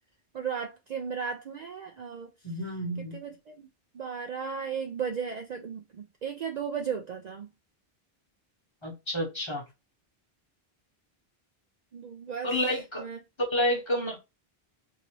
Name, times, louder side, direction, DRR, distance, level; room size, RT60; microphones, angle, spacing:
voice 1, 0.3-2.3 3.0-3.7 3.9-7.5 11.9-12.6 13.0-13.2, right 6 dB, 55° right, 0.5 m, -35 dB
voice 2, 2.4-3.2 8.8-9.6 12.4-13.0 13.4-14.2, equal, 30° left, 1.0 m, -29 dB
2.8 x 2.6 x 3.0 m
omnidirectional pair, 1.0 m